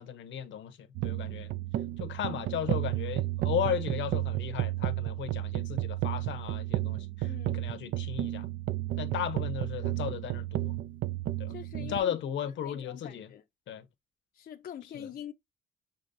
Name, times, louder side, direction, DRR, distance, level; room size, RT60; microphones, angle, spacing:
voice 1, 0.0-1.5 2.0-8.5 9.0-10.7 11.4-11.5 11.8-13.3 13.7-13.8 14.9-15.1, left 9 dB, 75° left, 0.8 m, -35 dB
sound 1, 0.9-12.0, right 15 dB, 80° right, 0.5 m, -32 dB
voice 2, 7.2-7.7 11.5-12.2 12.6-13.4 14.3-15.3, left 9 dB, 50° left, 0.5 m, -44 dB
6.7 x 3.0 x 2.6 m
cardioid pair, 90°, 20 cm